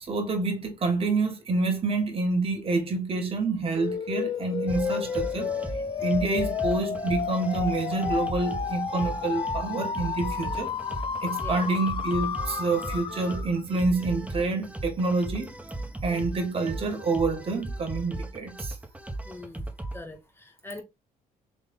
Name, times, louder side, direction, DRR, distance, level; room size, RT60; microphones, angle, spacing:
voice 1, 0.1-5.5 6.0-10.7 11.2-15.5 16.0-18.8, right 3 dB, 40° right, 1.5 m, -27 dB
sound 1, 3.8-13.6, left 6 dB, 35° left, 0.6 m, -31 dB
sound 2, 4.7-20.0, right 2 dB, 10° right, 1.1 m, -37 dB
voice 2, 19.2-20.8, left 2 dB, 15° left, 1.6 m, -43 dB
4.1 x 3.2 x 3.6 m
cardioid pair, 85°, 16 cm